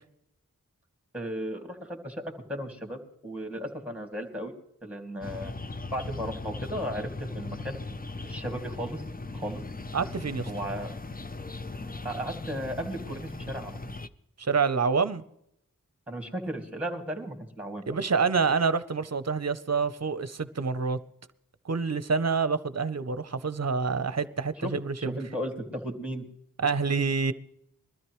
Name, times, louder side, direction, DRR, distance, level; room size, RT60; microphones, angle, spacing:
voice 1, 1.1-2.2 2.5-4.5 4.8-5.5 5.9-7.9 8.2-9.0 9.3-9.6 10.5-11.0 12.0-13.8 16.1-17.8 24.6-24.7 25.0-26.3, equal, 5° right, 2.4 m, -35 dB
sound 1, 5.2-14.1, left 3 dB, 25° left, 0.6 m, -38 dB
voice 2, 9.9-10.5 14.4-15.2 17.9-21.0 21.6-25.1 26.6-27.3, right 5 dB, 50° right, 0.7 m, -27 dB
21.5 x 13.5 x 3.1 m
wide cardioid pair, 40°, 34 cm